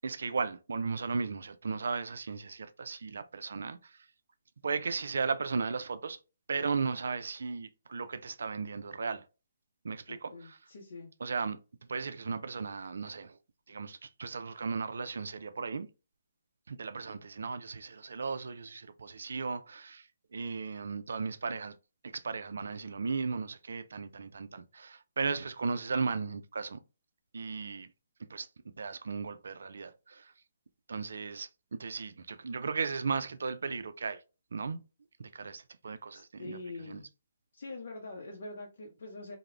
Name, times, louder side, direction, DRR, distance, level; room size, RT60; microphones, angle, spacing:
voice 1, 0.0-3.8 4.6-6.2 6.5-9.2 9.8-10.6 11.2-11.6 11.9-13.4 13.7-15.9 16.7-20.0 20.3-21.7 22.0-26.8 27.3-27.9 28.3-28.5 28.8-30.3 30.9-34.2 34.5-34.8 35.2-36.6 36.9-37.0, right 4 dB, 70° right, 0.3 m, -36 dB
voice 2, 10.1-11.1 36.1-37.1 37.5-39.4, left 2 dB, 65° left, 0.5 m, -44 dB
2.3 x 2.0 x 3.1 m
figure-of-eight pair, 140°, 0 cm